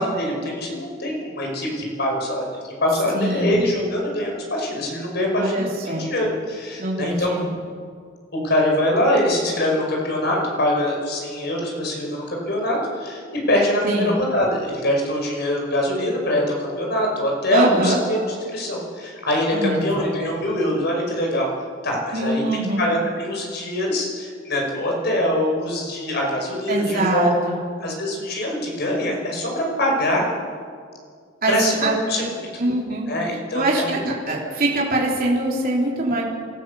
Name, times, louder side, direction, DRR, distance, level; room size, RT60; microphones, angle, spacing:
voice 1, 0.0-2.5 2.8-7.3 8.3-13.2 13.5-18.2 18.5-21.5 21.8-22.4 22.8-27.3 27.8-30.3 31.5-32.2 33.1-33.9, left 1 dB, 55° left, -1 dB, 5.5 m, -23 dB
voice 2, 3.1-3.6 5.3-6.1 6.8-7.5 13.8-14.1 17.5-18.0 19.5-20.1 22.1-22.8 26.7-27.6 31.4-32.0 32.6-33.1 33.5-36.2, right 1 dB, 45° right, -3 dB, 3.3 m, -23 dB
27.0 x 14.0 x 6.9 m, 2.1 s
head